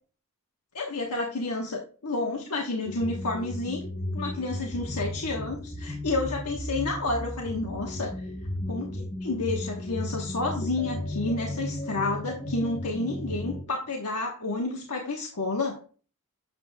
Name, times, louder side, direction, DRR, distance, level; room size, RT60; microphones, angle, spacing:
voice 1, 0.7-3.8 4.1-8.3 8.7-15.8, left 2 dB, 85° left, 0 dB, 1.2 m, -30 dB
sound 1, 2.9-13.6, left 1 dB, 25° left, 1.0 m, -34 dB
7.8 x 7.4 x 2.3 m, 0.39 s
head